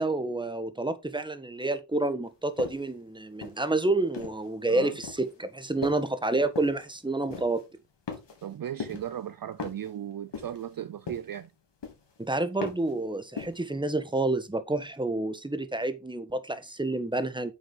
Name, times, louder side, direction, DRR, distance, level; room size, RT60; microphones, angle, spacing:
voice 1, 0.0-7.6 12.2-17.5, right 2 dB, 10° right, 1.3 m, -29 dB
sound 1, 2.6-2.9 3.4-4.5 5.0-5.3 5.8-6.1 6.6-6.8 7.3-7.6 8.1-8.5 8.8-9.2 9.6-9.9 10.3-10.7 11.1-11.5 11.8-12.2 12.6-12.9 13.4-13.7, left 5 dB, 70° left, 2.9 m, -39 dB
voice 2, 8.4-11.5, right 10 dB, 50° right, 0.5 m, -36 dB
8.9 x 6.4 x 3.9 m
wide cardioid pair, 90°, 44 cm